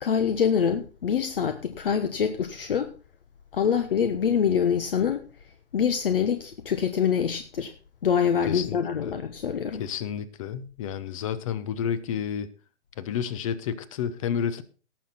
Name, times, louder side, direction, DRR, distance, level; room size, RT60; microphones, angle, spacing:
voice 1, 0.0-2.9 3.5-5.3 5.7-7.7 8.0-9.8, left 7 dB, 55° left, 1.3 m, -25 dB
voice 2, 8.5-9.1 9.8-12.5 13.0-14.6, left 8 dB, 30° left, 0.9 m, -30 dB
18.0 x 6.6 x 4.3 m
figure-of-eight pair, 130°, 34 cm